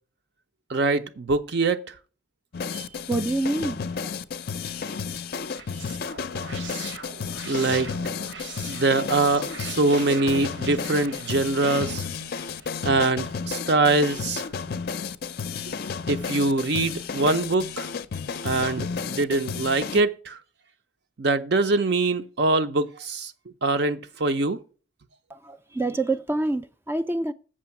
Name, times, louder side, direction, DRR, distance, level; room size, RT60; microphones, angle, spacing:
voice 1, 0.7-1.8 7.4-8.3 8.7-12.1 12.8-14.5 15.7-15.8 16.1-17.9 18.4-20.4 21.2-23.3 23.6-24.6, right 3 dB, 55° right, 0.6 m, -23 dB
sound 1, 2.5-20.0, left 5 dB, 50° left, 0.4 m, -32 dB
voice 2, 2.7-4.1 25.3-27.3, right 2 dB, 10° right, 0.3 m, -27 dB
sound 2, 5.3-13.4, right 4 dB, 75° right, 1.2 m, -42 dB
7.5 x 6.0 x 5.8 m
head